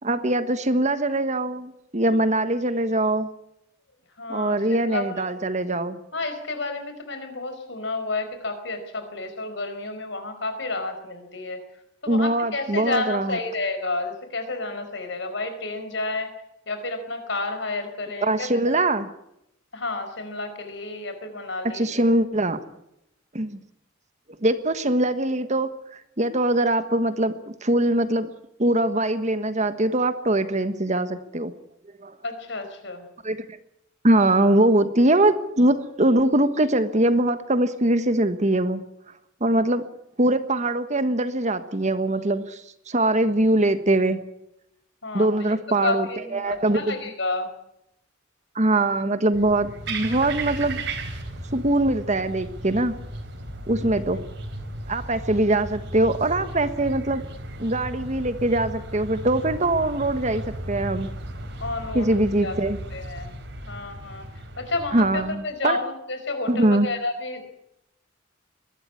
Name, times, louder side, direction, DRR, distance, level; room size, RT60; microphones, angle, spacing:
voice 1, 0.0-3.3 4.3-6.0 12.1-13.4 18.2-19.1 21.7-22.6 23.3-23.6 24.4-25.7 26.2-27.3 27.6-28.3 28.6-31.5 32.0-32.2 33.2-33.5 34.0-38.8 39.4-39.8 40.2-44.2 45.1-46.1 46.3-47.0 48.5-50.8 51.5-53.0 53.7-54.2 54.9-57.2 57.6-61.1 61.9-62.8 64.9-65.8 66.5-66.9, right 1 dB, 35° right, 11 dB, 1.4 m, -22 dB
voice 2, 4.2-5.3 6.1-11.6 12.0-16.3 16.7-18.8 19.7-21.9 32.2-33.0 45.0-45.5 45.8-47.5 53.8-54.0 61.6-62.1 62.4-62.6 62.9-63.4 63.7-64.3 64.6-67.5, left 2 dB, 65° left, 8 dB, 4.8 m, -30 dB
sound 1, 49.3-65.3, right 1 dB, 65° right, 4.1 m, -35 dB
22.0 x 13.0 x 9.7 m, 0.80 s
head